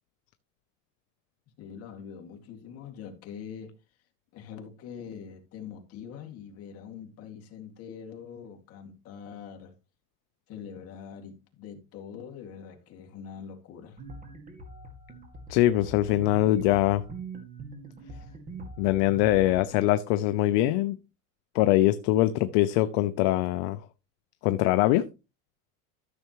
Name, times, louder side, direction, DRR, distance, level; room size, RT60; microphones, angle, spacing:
voice 1, 1.6-3.7 4.3-9.7 10.5-14.0, left 7 dB, 35° left, 2.4 m, -43 dB
sound 1, 14.0-19.6, right 2 dB, 20° right, 2.1 m, -43 dB
voice 2, 15.5-17.0 18.8-21.0 21.5-23.8 24.4-25.1, left 15 dB, 55° left, 0.7 m, -23 dB
13.5 x 6.8 x 3.1 m
cardioid pair, 165°, 39 cm